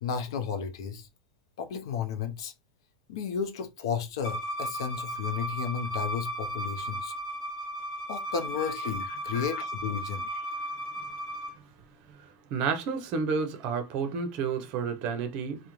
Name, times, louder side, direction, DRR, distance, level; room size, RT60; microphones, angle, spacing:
voice 1, 0.0-1.1 1.6-2.5 3.1-7.1 8.1-10.5, left 7 dB, 70° left, 0.5 m, -33 dB
Bowed string instrument, 4.2-11.5, equal, 50° left, 1.0 m, -35 dB
voice 2, 12.5-15.6, right 5 dB, 40° right, 0.6 m, -30 dB
2.4 x 2.1 x 2.9 m
supercardioid pair, 150°, 3 cm